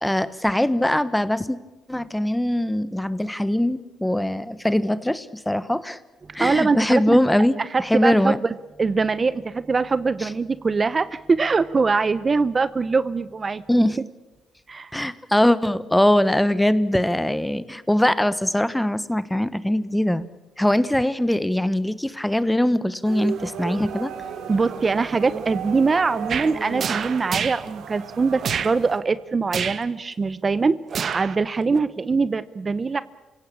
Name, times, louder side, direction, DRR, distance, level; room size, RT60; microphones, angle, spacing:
voice 1, 0.0-1.6 1.9-6.0 6.3-8.4 10.2-10.3 13.7-14.0 14.9-20.3 20.6-24.1, left 1 dB, 5° left, 15 dB, 1.1 m, -21 dB
voice 2, 6.4-7.2 7.7-13.9 14.7-14.9 24.5-33.0, right 4 dB, 30° right, 15 dB, 0.7 m, -23 dB
sound 1, 23.0-29.0, right 7 dB, 75° right, 2.7 m, -35 dB
sound 2, 26.3-26.5 26.8-27.6 28.4-28.7 29.5-29.8 30.9-31.4 31.7-31.8, right 7 dB, 55° right, 1.2 m, -27 dB
27.5 x 17.0 x 8.5 m, 1.1 s
cardioid pair, 90°, 0 cm